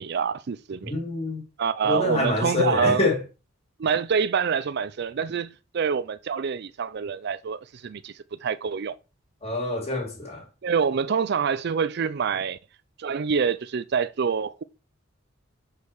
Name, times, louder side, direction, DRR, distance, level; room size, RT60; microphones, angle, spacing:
voice 1, 0.0-0.9 1.6-3.1 3.8-8.1 8.4-9.0 10.6-12.6 13.0-14.6, right 6 dB, 55° right, 0.4 m, -26 dB
voice 2, 0.9-1.4 1.8-3.2 9.4-10.4, left 3 dB, 30° left, 2.5 m, -26 dB
6.5 x 4.8 x 5.4 m
head